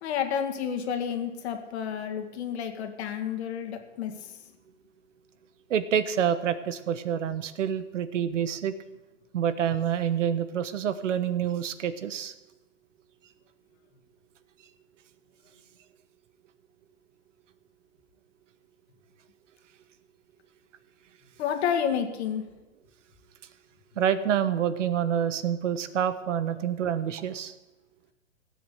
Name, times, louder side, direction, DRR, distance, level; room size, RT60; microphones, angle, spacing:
voice 1, 0.0-4.1 21.4-22.4, left 8 dB, 60° left, 5 dB, 2.1 m, -30 dB
voice 2, 5.7-8.7 9.3-12.3 24.0-27.5, right 9 dB, 75° right, 13 dB, 1.2 m, -27 dB
16.5 x 7.8 x 6.9 m, 1.1 s
hypercardioid pair, 130°, 37 cm